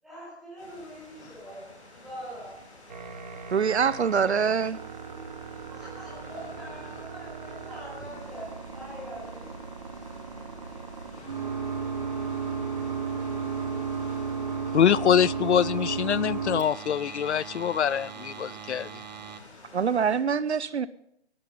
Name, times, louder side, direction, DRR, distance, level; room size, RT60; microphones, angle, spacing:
voice 1, 0.0-1.6 1.9-2.5 5.7-9.5, equal, ahead, 4.7 m, -43 dB
sound 1, 0.6-20.2, left 2 dB, 30° left, 5.8 m, -51 dB
sound 2, 2.9-19.4, right 6 dB, 40° right, 1.4 m, -35 dB
voice 2, 3.5-4.8 19.7-20.9, right 6 dB, 75° right, 0.8 m, -24 dB
voice 3, 12.4-12.9 13.9-14.0 14.7-19.0, left 9 dB, 85° left, 0.5 m, -25 dB
19.5 x 12.5 x 5.5 m
hypercardioid pair, 175°, 33 cm